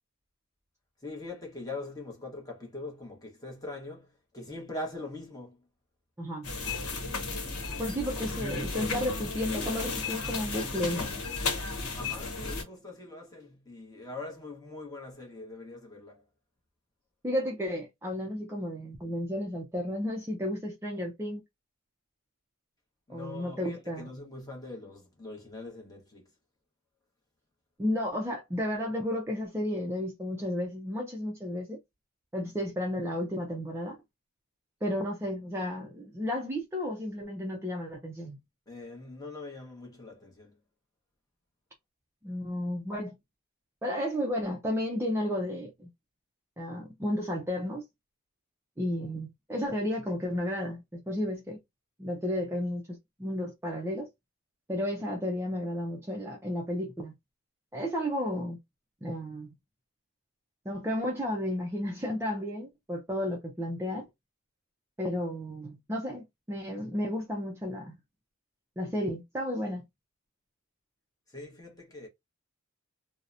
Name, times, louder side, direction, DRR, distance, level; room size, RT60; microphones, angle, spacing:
voice 1, 1.0-5.6 11.9-16.2 23.1-26.3 38.7-40.6 71.3-72.1, left 2 dB, 15° left, 0.9 m, -42 dB
voice 2, 6.2-6.5 7.8-11.1 17.2-21.4 23.1-24.1 27.8-31.8 32.3-34.0 34.8-38.4 42.2-43.2 43.8-45.9 46.6-47.8 48.8-51.6 52.0-54.1 54.7-57.1 57.7-58.6 59.0-59.5 60.7-64.0 65.0-68.0 68.8-69.8, left 1 dB, 10° right, 0.4 m, -33 dB
sound 1, 6.4-12.6, left 3 dB, 85° left, 0.8 m, -34 dB
2.7 x 2.0 x 2.4 m
head